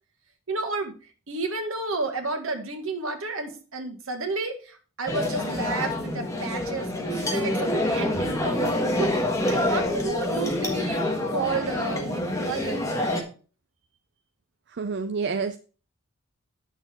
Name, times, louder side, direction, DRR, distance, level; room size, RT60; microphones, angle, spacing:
voice 1, 0.5-0.9 1.3-8.6 9.0-9.2 9.4-11.0 11.3-12.9, right 3 dB, 70° right, 1.9 m, -31 dB
sound 1, 5.1-13.2, left 1 dB, 15° left, 1.4 m, -26 dB
voice 2, 14.8-15.6, right 5 dB, 50° right, 0.5 m, -28 dB
9.1 x 6.8 x 4.4 m
head